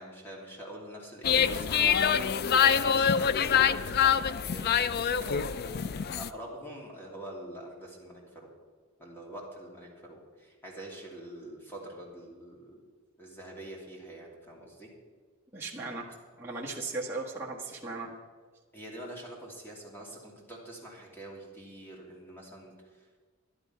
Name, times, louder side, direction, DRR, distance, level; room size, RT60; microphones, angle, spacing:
voice 1, 0.0-8.5 9.0-12.8 13.2-14.9 18.7-23.2, right 1 dB, 10° left, -2 dB, 2.9 m, -45 dB
sound 1, 1.2-6.3, left 8 dB, 50° left, 0.4 m, -25 dB
voice 2, 15.5-16.1 16.4-18.1, right 3 dB, 10° right, -5 dB, 1.5 m, -37 dB
11.5 x 11.5 x 5.8 m, 1.5 s
head